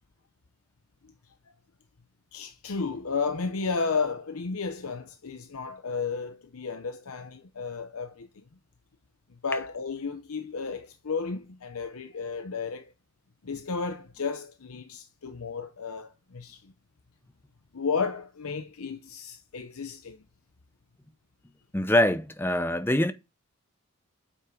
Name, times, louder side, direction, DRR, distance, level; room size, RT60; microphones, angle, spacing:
voice 1, 2.3-8.4 9.4-12.9 13.4-16.7 17.7-20.2, left 5 dB, 70° left, 0.8 m, -33 dB
voice 2, 21.7-23.1, left 1 dB, 10° left, 0.6 m, -24 dB
8.6 x 5.7 x 4.9 m
head